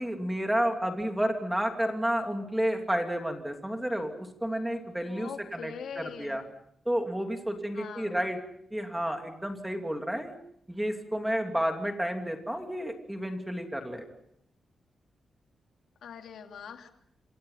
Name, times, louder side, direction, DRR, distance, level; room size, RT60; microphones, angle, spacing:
voice 1, 0.0-6.4 6.8-8.4 8.7-10.4 10.7-14.1, equal, 5° right, 4 dB, 2.9 m, -31 dB
voice 2, 5.0-6.4 7.7-8.2 16.0-16.9, left 7 dB, 85° left, 4 dB, 2.9 m, -42 dB
27.5 x 27.0 x 5.7 m, 0.68 s
wide cardioid pair, 180°, 0 cm